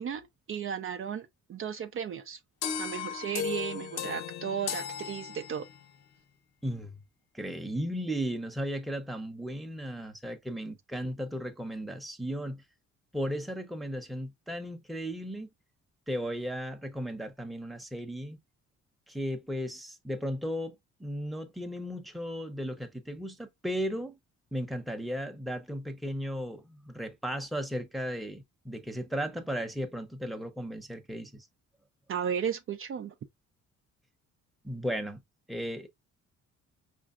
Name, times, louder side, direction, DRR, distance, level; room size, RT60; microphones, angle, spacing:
voice 1, 0.0-2.4 2.8-5.7 32.1-33.1, right 8 dB, 45° right, 0.5 m, -35 dB
sound 1, 2.6-5.9, left 8 dB, 90° left, 0.8 m, -36 dB
voice 2, 6.6-7.0 7.3-12.6 13.1-15.5 16.1-18.4 19.1-24.2 24.5-31.5 34.6-35.2 35.5-35.9, equal, ahead, 0.7 m, -35 dB
4.8 x 2.6 x 2.3 m
cardioid pair, 90°, 30 cm